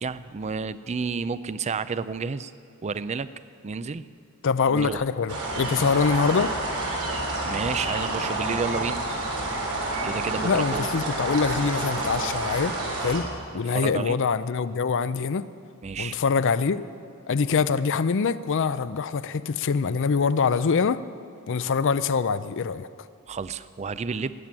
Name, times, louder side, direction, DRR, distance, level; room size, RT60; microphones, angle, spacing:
voice 1, 0.0-2.5 2.8-3.3 3.6-4.1 4.7-5.0 7.4-9.0 10.0-10.9 13.5-14.2 15.8-16.2 23.3-24.3, right 5 dB, 30° right, 15 dB, 0.4 m, -30 dB
voice 2, 4.4-6.5 10.4-13.3 13.5-15.5 16.0-16.9 17.3-21.0 21.5-22.9, left 5 dB, 60° left, 15 dB, 0.5 m, -24 dB
sound 1, 5.3-13.2, right 2 dB, 85° right, 3.3 m, -29 dB
18.0 x 7.6 x 9.7 m, 2.3 s
head